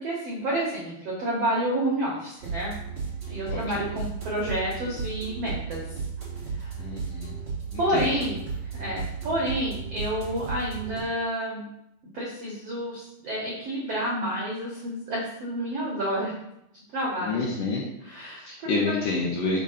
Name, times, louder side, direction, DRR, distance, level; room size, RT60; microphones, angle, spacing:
voice 1, 0.0-2.7 3.3-5.8 6.6-6.7 7.8-8.4 8.7-11.7 12.1-16.3 16.9-17.4 18.0-18.5 18.9-19.0, right 1 dB, 85° right, -5 dB, 1.3 m, -29 dB
sound 1, 2.4-11.0, right 5 dB, 35° right, 2.9 m, -34 dB
voice 2, 3.5-3.9 6.8-7.3 7.7-8.1 17.2-17.8 18.4-19.6, left 3 dB, 80° left, -3 dB, 1.9 m, -29 dB
6.5 x 3.8 x 5.6 m, 0.80 s
omnidirectional pair, 5.2 m